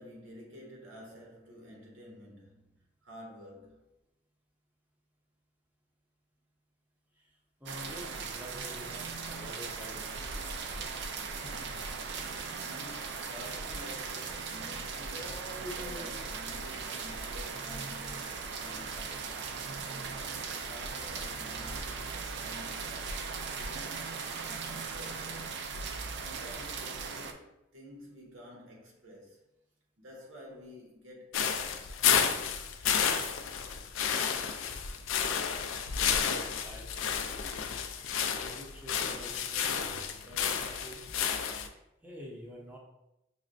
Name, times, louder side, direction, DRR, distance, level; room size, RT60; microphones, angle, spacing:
voice 1, 0.0-3.9 11.3-19.3 19.9-23.1 23.5-25.7 26.1-29.4 30.0-32.0, equal, 90° right, 1.0 m, -51 dB
voice 2, 7.6-10.4 35.9-37.8 38.3-41.1 42.0-42.8, equal, 10° right, 0.6 m, -48 dB
sound 1, 7.7-27.3, right 5 dB, 60° right, 0.4 m, -38 dB
sound 2, 14.5-22.0, right 1 dB, 20° left, 0.8 m, -51 dB
sound 3, 31.3-41.7, left 7 dB, 85° left, 0.4 m, -31 dB
5.9 x 2.1 x 2.5 m
head